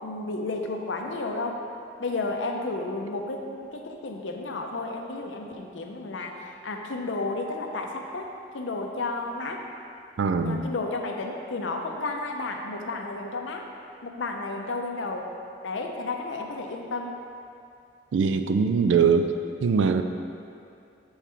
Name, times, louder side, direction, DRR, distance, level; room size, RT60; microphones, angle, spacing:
voice 1, 0.0-1.6 2.0-8.3 8.5-9.6 10.4-13.6 14.0-15.3 15.6-17.2, left 3 dB, 90° left, 2 dB, 0.6 m, -32 dB
voice 2, 10.2-10.7 18.1-19.3 19.6-20.0, right 5 dB, 85° right, 7 dB, 0.4 m, -22 dB
7.2 x 4.7 x 3.4 m, 2.5 s
head